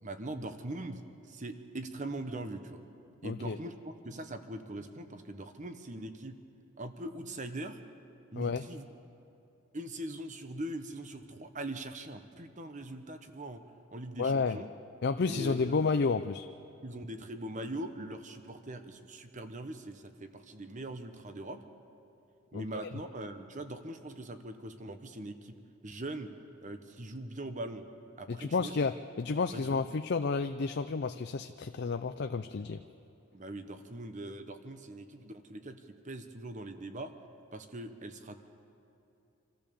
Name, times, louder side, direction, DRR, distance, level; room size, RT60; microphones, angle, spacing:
voice 1, 0.0-2.8 3.2-6.4 6.8-7.8 8.3-8.8 9.7-13.6 13.9-14.7 15.3-15.7 16.8-21.6 22.5-25.6 25.8-26.3 26.6-27.8 28.2-28.7 29.5-29.9 33.3-35.8 36.0-37.1 37.5-38.5, right 1 dB, 35° right, 8 dB, 1.1 m, -41 dB
voice 2, 3.2-3.6 8.4-8.6 14.2-14.6 15.0-16.5 22.5-22.6 28.3-32.8, left 4 dB, 50° left, 8 dB, 0.5 m, -31 dB
26.0 x 14.0 x 7.0 m, 2.8 s
head